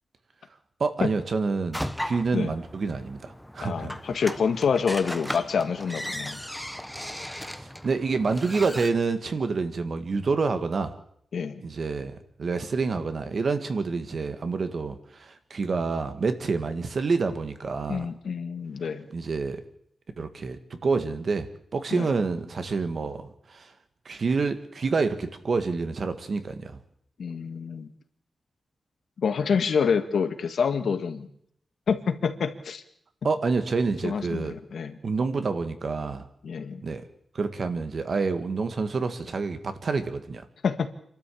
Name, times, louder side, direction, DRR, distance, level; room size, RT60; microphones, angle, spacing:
voice 1, 0.8-3.9 7.5-10.9 11.6-18.1 19.1-19.6 20.2-23.7 24.0-26.8 33.2-34.5 35.0-36.2 36.8-37.0 37.3-40.4, right 4 dB, 45° right, 9 dB, 1.7 m, -28 dB
sound 1, 1.7-8.9, equal, ahead, 1.0 m, -37 dB
voice 2, 3.6-6.4 11.3-11.6 17.9-19.1 21.9-22.1 27.2-27.9 29.2-31.3 31.9-32.8 34.0-34.9 36.4-36.8 40.6-40.9, left 6 dB, 75° left, 8 dB, 1.8 m, -27 dB
27.5 x 12.5 x 8.5 m, 0.69 s
wide cardioid pair, 165°, 0 cm